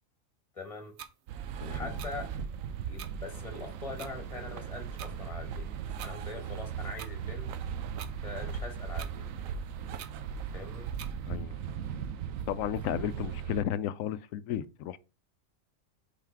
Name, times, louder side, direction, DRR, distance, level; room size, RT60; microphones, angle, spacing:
voice 1, 0.5-1.0 1.6-2.3 2.9-5.7 6.0-7.5 8.2-9.3 10.5-10.9, left 3 dB, 25° left, 1.8 m, -42 dB
sound 1, 1.0-1.1 2.0-2.1 3.0-3.1 4.0-4.1 5.0-5.1 6.0-6.1 7.0-7.1 8.0-8.2 9.0-9.1 10.0-10.1 11.0-11.1, right 9 dB, 65° right, 0.9 m, -44 dB
sound 2, 1.3-13.6, right 7 dB, 85° right, 1.0 m, -38 dB
voice 2, 1.6-1.9 11.2-11.6 12.5-15.0, left 10 dB, 85° left, 1.0 m, -33 dB
5.7 x 4.2 x 4.5 m
omnidirectional pair, 1.4 m